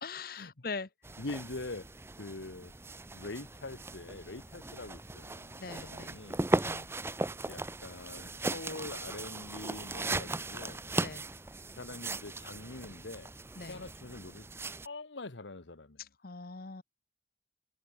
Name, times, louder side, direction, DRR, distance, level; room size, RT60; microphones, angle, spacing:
voice 1, 0.0-0.9 5.6-6.2 6.6-6.9 11.0-11.3 13.6-13.8 16.0-16.8, left 4 dB, 55° left, 1.0 m, -42 dB
sound 1, 1.0-14.9, right 2 dB, 15° right, 0.7 m, -38 dB
voice 2, 1.2-1.9 2.2-2.7 3.1-5.6 5.9-6.4 7.5-10.8 11.8-13.3 13.6-14.5 14.8-16.0, left 2 dB, 90° left, 1.4 m, -44 dB
head